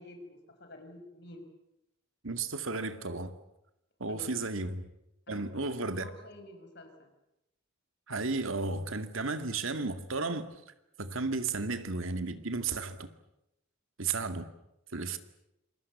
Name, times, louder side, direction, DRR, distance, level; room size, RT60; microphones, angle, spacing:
voice 1, 0.0-1.4 4.1-4.5 5.3-7.1, left 1 dB, 55° left, 5.7 m, -50 dB
voice 2, 2.2-3.3 4.0-4.9 5.3-6.1 8.1-10.5 11.0-13.1 14.0-14.5 14.9-15.2, right 3 dB, 75° right, 2.2 m, -33 dB
27.5 x 22.0 x 8.5 m
head